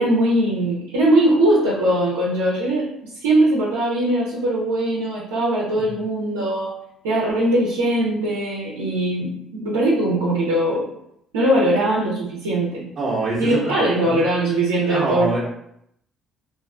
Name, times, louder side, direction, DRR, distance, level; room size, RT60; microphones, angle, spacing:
voice 1, 0.0-2.9 3.2-6.7 7.0-10.9 11.3-12.8 13.4-15.3, right 1 dB, 90° right, -8 dB, 0.5 m, -20 dB
voice 2, 13.0-14.3 14.9-15.4, right 2 dB, 30° right, -8 dB, 0.9 m, -25 dB
2.5 x 2.3 x 2.3 m, 0.75 s
hypercardioid pair, 60°, 0 cm